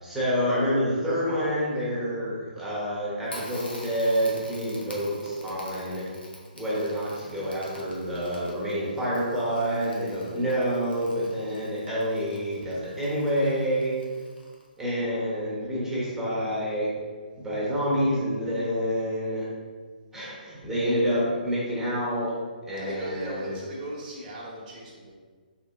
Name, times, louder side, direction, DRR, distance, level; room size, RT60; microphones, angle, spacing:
voice 1, 0.0-6.1 6.5-13.9 14.8-16.9 17.4-19.5 20.1-22.4 22.7-23.5, equal, 5° right, -8 dB, 1.1 m, -28 dB
Crackle, 3.3-14.8, left 1 dB, 85° left, 1.2 m, -47 dB
voice 2, 22.8-25.1, right 1 dB, 35° right, -5 dB, 1.2 m, -38 dB
4.3 x 3.4 x 3.6 m, 1.5 s
figure-of-eight pair, 135°, 5 cm